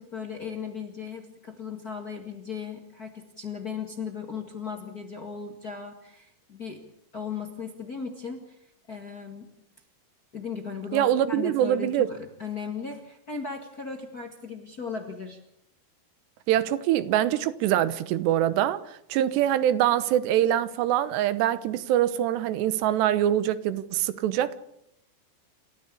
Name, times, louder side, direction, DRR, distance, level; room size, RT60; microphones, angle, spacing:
voice 1, 0.0-6.8 7.1-8.6 8.9-9.5 10.3-15.4, left 6 dB, 40° left, 1.4 m, -37 dB
voice 2, 10.9-12.1 16.5-24.6, right 11 dB, 90° right, 3.2 m, -24 dB
28.5 x 14.0 x 8.6 m
omnidirectional pair, 4.7 m